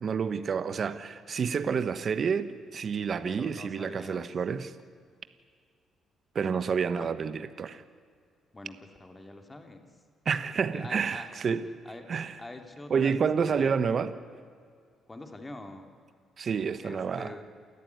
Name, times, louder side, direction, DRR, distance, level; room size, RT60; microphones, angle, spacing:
voice 1, 0.0-4.7 6.3-7.8 10.2-11.7 12.1-12.4 12.9-14.1 16.4-17.4, right 6 dB, 50° right, 12 dB, 1.1 m, -29 dB
voice 2, 3.3-4.3 6.6-7.1 8.5-9.8 10.7-11.3 11.6-12.1 12.4-13.8 15.1-15.9 16.8-17.4, left 2 dB, 20° left, 5 dB, 2.7 m, -45 dB
28.0 x 14.0 x 9.5 m, 2.1 s
cardioid pair, 90°, 0 cm